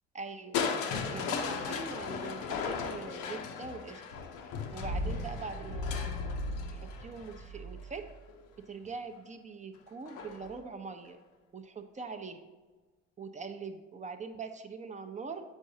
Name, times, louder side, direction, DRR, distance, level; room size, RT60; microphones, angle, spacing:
voice 1, 0.1-0.6 1.1-4.0 4.7-6.4 6.7-8.1 8.6-11.2 11.5-12.4 13.2-15.4, right 4 dB, 20° right, 7 dB, 0.6 m, -43 dB
Crushing, 0.5-8.5 10.1-10.6 11.1-11.2, left 4 dB, 60° left, 0.7 m, -36 dB
8.0 x 4.5 x 2.8 m, 1.3 s
hypercardioid pair, 60°, 35 cm